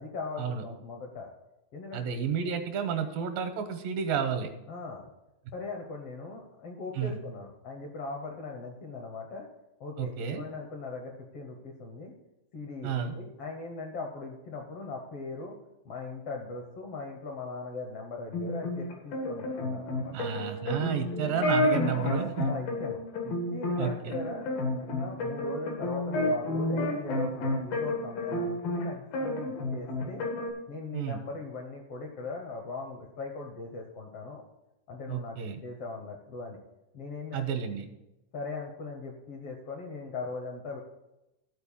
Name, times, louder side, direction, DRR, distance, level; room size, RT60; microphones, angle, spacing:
voice 1, 0.0-1.3 1.7-2.1 4.7-5.1 5.5-9.5 9.8-12.1 12.5-15.5 15.8-20.1 22.4-24.5 24.9-30.2 30.7-34.4 34.9-36.6 36.9-37.4 38.3-40.8, left 3 dB, 65° left, 2 dB, 1.5 m, -39 dB
voice 2, 1.9-4.5 6.9-7.2 10.0-10.4 12.8-13.1 20.1-22.5 23.8-24.2 30.9-31.2 35.1-35.6 37.3-37.9, right 7 dB, 80° right, 7 dB, 2.7 m, -31 dB
sound 1, 18.3-28.9 29.1-30.5, left 1 dB, 85° left, 3.6 m, -30 dB
13.0 x 4.4 x 7.3 m, 0.95 s
omnidirectional pair, 4.0 m